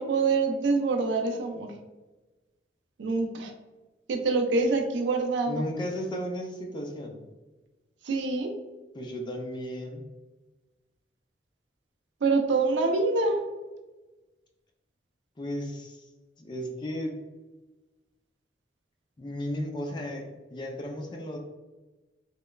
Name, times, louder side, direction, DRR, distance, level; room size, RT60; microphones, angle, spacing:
voice 1, 0.0-1.7 3.0-3.5 4.1-5.6 8.0-8.5 12.2-13.4, right 3 dB, 75° right, 4 dB, 0.4 m, -25 dB
voice 2, 5.5-7.2 8.9-10.0 15.4-16.1 16.4-17.1 19.2-21.4, equal, 25° left, 1 dB, 0.3 m, -34 dB
2.9 x 2.1 x 2.2 m, 1.2 s
head